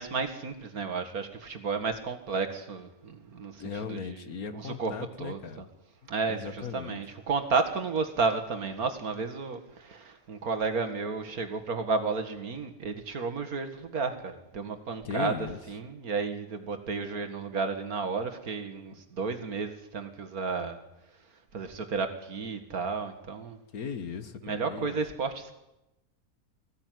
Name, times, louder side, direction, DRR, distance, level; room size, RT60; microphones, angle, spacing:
voice 1, 0.0-3.6 3.9-4.2 4.5-4.9 5.2-5.7 6.1-20.8 21.5-23.6 24.4-25.5, right 4 dB, 75° right, 8 dB, 2.3 m, -32 dB
voice 2, 3.6-5.6 6.3-7.0 15.0-15.6 23.7-25.0, left 6 dB, 75° left, 11 dB, 1.9 m, -37 dB
20.0 x 15.5 x 9.4 m, 0.93 s
omnidirectional pair, 1.6 m